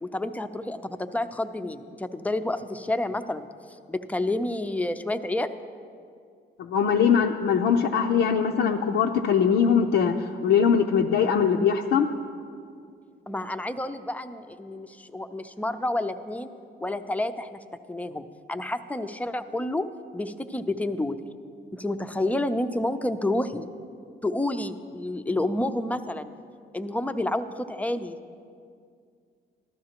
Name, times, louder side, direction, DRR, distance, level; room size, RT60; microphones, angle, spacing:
voice 1, 0.0-3.5 3.9-5.5 13.3-16.5 16.8-17.6 17.9-19.9 20.1-21.2 21.7-23.7 24.2-26.3 26.7-28.2, left 1 dB, 5° left, 9 dB, 0.5 m, -29 dB
voice 2, 6.6-12.1, left 7 dB, 75° left, 0 dB, 0.6 m, -22 dB
14.5 x 12.5 x 2.9 m, 2.3 s
cardioid pair, 90°, 20 cm